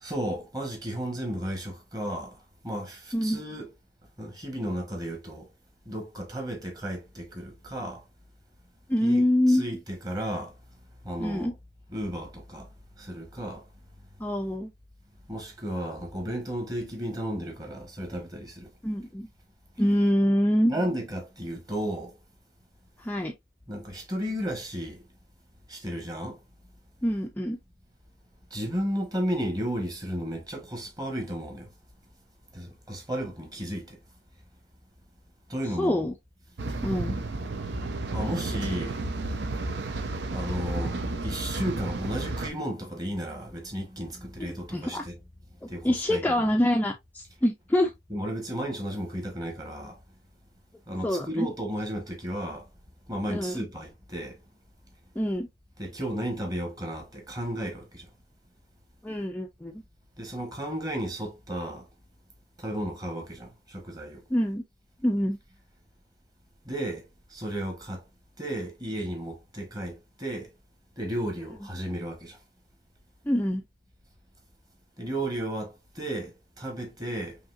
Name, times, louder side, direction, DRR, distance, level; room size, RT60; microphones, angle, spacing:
voice 1, 0.0-3.7 4.2-5.5 5.8-8.0 9.0-10.5 11.0-11.5 11.9-12.7 13.0-13.6 15.3-18.7 20.7-22.2 23.7-25.0 25.7-26.4 28.5-31.7 32.5-34.0 35.5-36.1 38.1-39.0 40.3-45.2 45.7-46.5 48.1-50.0 50.9-52.7 53.1-54.4 55.8-58.1 60.2-61.8 62.6-64.2 66.6-68.0 68.4-70.5 71.0-72.4 75.0-77.4, equal, 20° right, 1.3 m, -34 dB
voice 2, 8.9-9.6 11.2-11.5 14.2-14.7 18.8-19.3 19.8-20.7 23.0-23.3 27.0-27.6 35.8-36.1 36.8-37.2 44.7-45.0 45.6-47.9 51.0-51.5 53.3-53.6 55.2-55.5 59.0-59.8 64.3-64.6 65.0-65.4 73.3-73.6, left 1 dB, 10° left, 0.4 m, -25 dB
sound 1, 36.6-42.5, right 2 dB, 75° right, 0.7 m, -32 dB
5.4 x 2.8 x 2.5 m
head